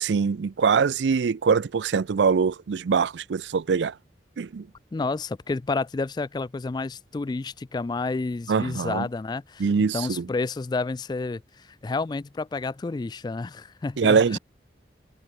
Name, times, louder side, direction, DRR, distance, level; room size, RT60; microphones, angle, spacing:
voice 1, 0.0-4.0 4.4-4.7 8.5-9.1 9.6-10.3 14.0-14.4, right 5 dB, 80° right, 0.4 m, -23 dB
voice 2, 4.9-9.7 9.9-14.4, left 3 dB, 25° left, 0.3 m, -30 dB
head